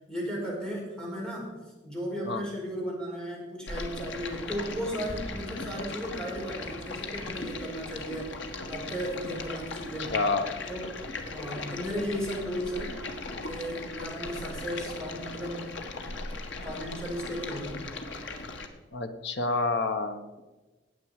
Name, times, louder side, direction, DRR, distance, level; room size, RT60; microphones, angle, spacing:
voice 1, 0.1-1.5 1.8-8.3 8.7-10.1 10.7-10.9 11.3-13.0 13.4-15.7 16.6-17.9, equal, 5° left, -4 dB, 4.5 m, -35 dB
Stream, 3.7-18.7, left 3 dB, 85° left, 1.5 m, -38 dB
voice 2, 10.0-10.5 18.9-20.4, left 3 dB, 65° left, 7 dB, 1.2 m, -29 dB
19.0 x 7.6 x 4.9 m, 1.2 s
head